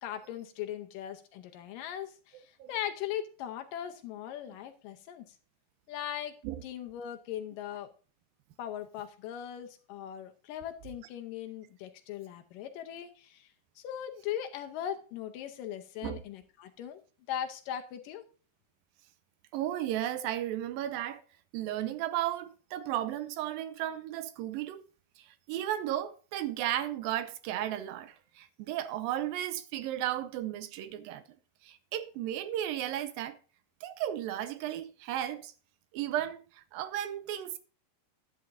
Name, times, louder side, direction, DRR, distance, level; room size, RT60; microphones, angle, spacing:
voice 1, 0.0-5.4 5.9-6.4 6.6-7.9 8.6-13.5 13.8-17.0 17.3-18.2, left 10 dB, 75° left, 2.3 m, -39 dB
voice 2, 19.5-21.2 21.5-24.8 25.2-31.2 31.6-33.4 33.8-35.5 35.9-37.6, right 12 dB, 80° right, 2.3 m, -34 dB
11.0 x 10.5 x 2.7 m
omnidirectional pair, 4.2 m